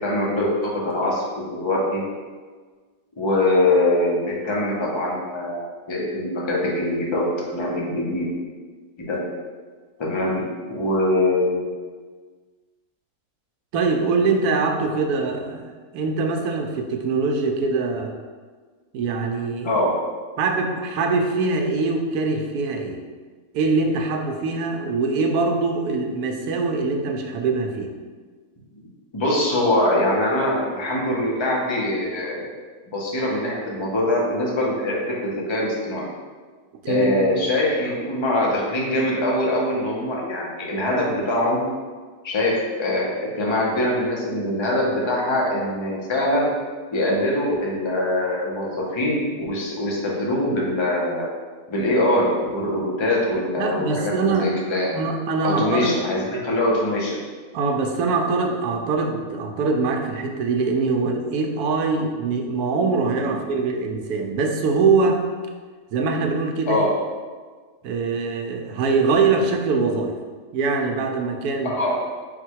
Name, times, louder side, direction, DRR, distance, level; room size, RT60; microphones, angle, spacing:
voice 1, 0.0-2.0 3.2-7.3 7.5-8.3 9.0-9.2 10.0-11.7 19.6-19.9 29.1-32.5 32.9-36.1 36.9-41.6 42.2-46.5 46.9-51.3 51.7-54.9 55.4-57.2 63.2-63.4 66.7-66.9 71.6-71.9, left 1 dB, 45° left, -4 dB, 0.3 m, -23 dB
voice 2, 13.7-18.1 18.9-19.8 20.4-23.0 23.5-27.9 36.8-37.3 53.6-54.5 54.9-55.9 57.5-65.3 65.9-66.9 67.8-70.1 70.5-71.7, right 4 dB, 75° right, 3 dB, 1.0 m, -23 dB
4.1 x 2.2 x 4.5 m, 1.5 s
omnidirectional pair, 1.6 m